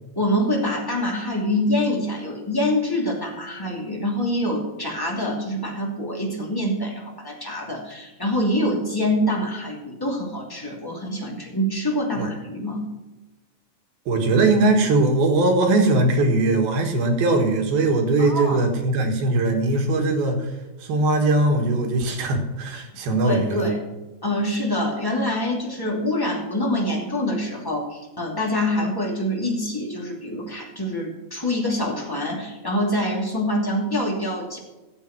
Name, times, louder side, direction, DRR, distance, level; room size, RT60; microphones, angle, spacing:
voice 1, 0.2-12.9 18.2-18.6 22.7-22.8 23.2-23.8 24.2-34.6, left 1 dB, 5° left, -2 dB, 2.2 m, -25 dB
voice 2, 14.1-20.4 20.8-23.7, right 2 dB, 85° right, 4 dB, 3.5 m, -20 dB
14.0 x 8.1 x 6.0 m, 1.1 s
omnidirectional pair, 4.2 m